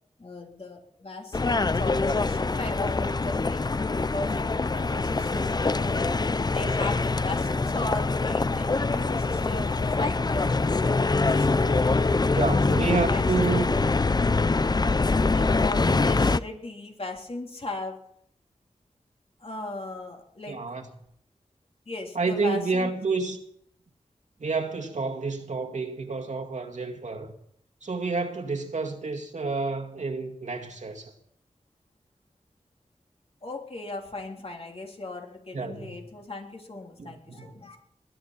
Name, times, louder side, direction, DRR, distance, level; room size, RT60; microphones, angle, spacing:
voice 1, 0.2-6.1 6.5-10.6 11.3-13.9 15.3-18.0 19.4-20.6 21.9-22.9 33.4-37.8, left 2 dB, 50° left, 3.4 m, -37 dB
sound 1, 1.3-16.4, left 3 dB, 35° left, 0.5 m, -24 dB
voice 2, 12.4-13.7 20.5-20.9 22.1-23.4 24.4-27.3 27.8-31.1 35.5-36.0 37.0-37.5, right 4 dB, 75° right, 2.1 m, -29 dB
20.5 x 11.0 x 5.8 m
wide cardioid pair, 70°, 13 cm